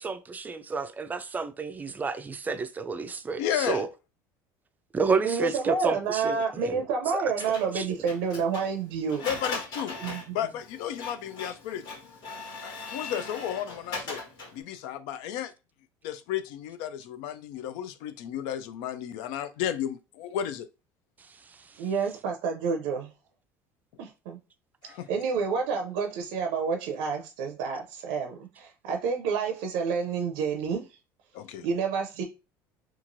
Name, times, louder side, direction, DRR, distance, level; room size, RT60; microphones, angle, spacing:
voice 1, 0.0-3.9 4.9-6.8 7.1-7.2 7.8-7.9, right 4 dB, 20° right, 0.3 m, -30 dB
voice 2, 3.4-3.9 9.2-10.0 10.3-11.8 12.6-14.2 14.5-15.5 16.0-20.7 24.8-25.1 31.3-31.7, left 10 dB, 80° left, 0.4 m, -33 dB
voice 3, 5.2-9.2 10.0-10.4 21.8-23.1 24.0-24.4 25.1-30.9 31.6-32.2, right 5 dB, 80° right, 0.5 m, -29 dB
Printer, 7.4-14.6, left 3 dB, 60° left, 1.4 m, -39 dB
2.9 x 2.3 x 2.6 m
supercardioid pair, 115°, 9 cm